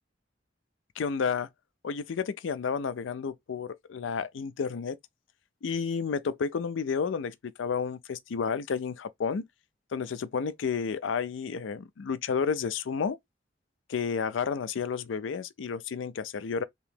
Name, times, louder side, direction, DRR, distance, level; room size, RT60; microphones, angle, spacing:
voice 1, 1.0-1.5 1.8-5.0 5.6-9.5 9.9-13.2 13.9-16.6, left 6 dB, 85° left, 0.4 m, -31 dB
2.9 x 2.9 x 3.4 m
head